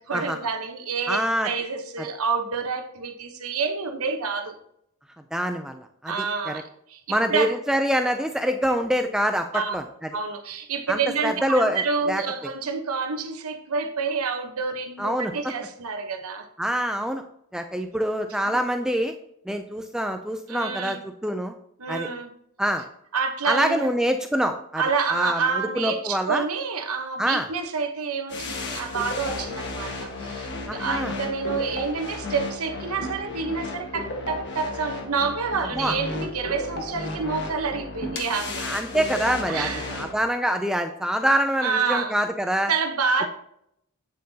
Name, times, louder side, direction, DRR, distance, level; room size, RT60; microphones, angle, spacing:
voice 1, 0.0-4.6 6.1-7.5 9.5-9.7 10.1-16.5 18.4-18.6 20.5-21.1 21.8-22.3 23.1-23.9 24.7-38.7 39.4-40.0 41.6-42.1 42.7-43.3, right 5 dB, 80° right, 5 dB, 1.0 m, -28 dB
voice 2, 1.1-1.5 5.3-6.1 6.5-6.6 7.1-9.8 10.9-12.2 15.0-15.3 16.6-17.2 17.5-19.1 19.5-21.5 21.9-22.1 22.6-22.8 23.4-24.8 25.1-26.4 27.2-27.5 30.7-31.1 35.7-35.9 38.6-42.7, equal, 5° right, 6 dB, 0.3 m, -25 dB
sound 1, 28.3-40.1, left 2 dB, 50° left, 1.3 m, -33 dB
8.6 x 7.5 x 2.8 m, 0.74 s
head